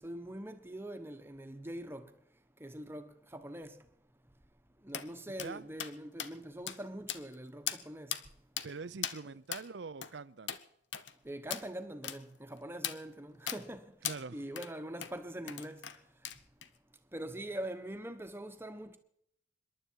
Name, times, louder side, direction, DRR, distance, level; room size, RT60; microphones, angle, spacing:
voice 1, 0.0-2.1 2.6-3.7 4.8-8.1 11.2-13.9 14.3-15.8 17.1-19.0, right 1 dB, 15° right, 1.2 m, -43 dB
sound 1, 4.9-5.1 5.4-5.5 5.8-5.9 6.2-6.3 6.7-6.8 7.1-7.3 7.7-7.8 8.1-8.2 8.6-8.7 9.0-9.2 9.5-9.6 10.0-10.1 10.5-10.6 10.9-11.1 11.5-11.6 12.0-12.2 12.8-13.0 13.5-13.6 14.0-14.2 14.6-14.7 15.0-15.1 15.5-16.0 16.2-16.7, left 10 dB, 80° left, 0.9 m, -38 dB
voice 2, 8.6-10.6 14.0-14.5, right 4 dB, 70° right, 0.6 m, -44 dB
26.5 x 11.5 x 4.7 m
head